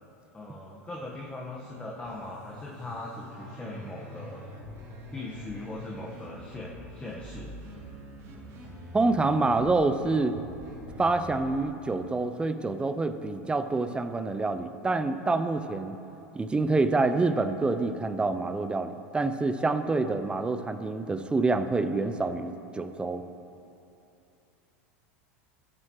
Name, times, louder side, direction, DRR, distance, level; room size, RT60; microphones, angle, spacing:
voice 1, 0.3-4.4 5.1-7.5, left 2 dB, 15° left, -4 dB, 1.4 m, -40 dB
sound 1, 2.0-11.5, equal, 40° right, 2.7 m, -45 dB
voice 2, 8.9-10.3 11.0-15.9 16.3-23.2, right 3 dB, 15° right, 9 dB, 0.7 m, -27 dB
20.5 x 7.5 x 3.2 m, 2.8 s
hypercardioid pair, 90°, 8 cm